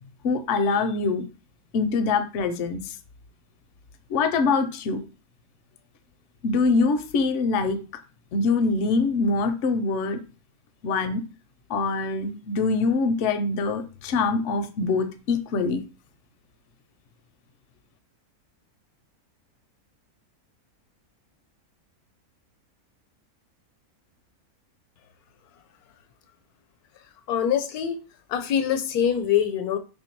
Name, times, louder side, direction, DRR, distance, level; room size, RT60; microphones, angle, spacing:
voice 1, 0.2-1.2 1.7-2.8 4.1-5.0 6.4-7.8 8.3-10.2 10.8-11.2 11.7-15.8, left 4 dB, 65° left, 0.8 m, -24 dB
voice 2, 27.3-28.0 28.3-29.8, left 9 dB, 80° left, 1.1 m, -24 dB
3.3 x 2.7 x 4.4 m
omnidirectional pair, 1.6 m